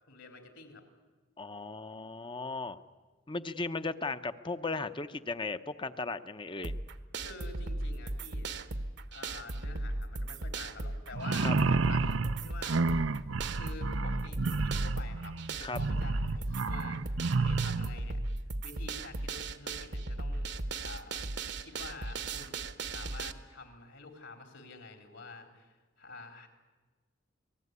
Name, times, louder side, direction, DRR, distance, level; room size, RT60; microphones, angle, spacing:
voice 1, 0.1-0.8 7.2-8.5 8.8-12.8 13.5-18.2 18.6-20.5 20.8-21.3 21.6-22.6 22.8-26.5, left 3 dB, 70° left, 5 dB, 4.1 m, -48 dB
voice 2, 1.4-2.8 3.3-6.7 11.4-11.5 15.6-15.8, left 3 dB, 25° left, 10 dB, 0.8 m, -36 dB
sound 1, 6.6-23.3, right 2 dB, 60° right, 1.1 m, -37 dB
sound 2, 11.1-17.9, right 3 dB, 80° right, 0.7 m, -30 dB
27.5 x 19.0 x 9.7 m, 1.3 s
head